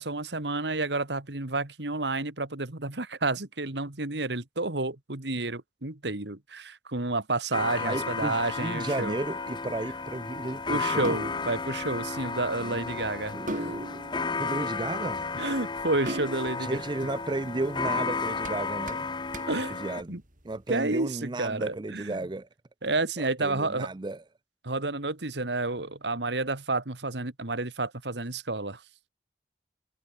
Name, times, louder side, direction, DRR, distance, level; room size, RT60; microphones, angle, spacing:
voice 1, 0.0-9.2 10.7-13.7 15.4-16.8 19.5-19.7 20.1-20.2 20.7-22.2 22.8-23.9 24.6-28.8, right 2 dB, 75° right, 2.3 m, -30 dB
sound 1, 7.5-20.0, left 4 dB, 25° left, 0.8 m, -33 dB
voice 2, 7.8-11.2 12.6-13.1 13.3-14.0 14.4-15.2 16.6-19.1 19.7-22.5 23.2-24.2, right 2 dB, 25° right, 0.5 m, -34 dB
sound 2, 8.5-20.6, right 1 dB, 45° right, 5.4 m, -43 dB
head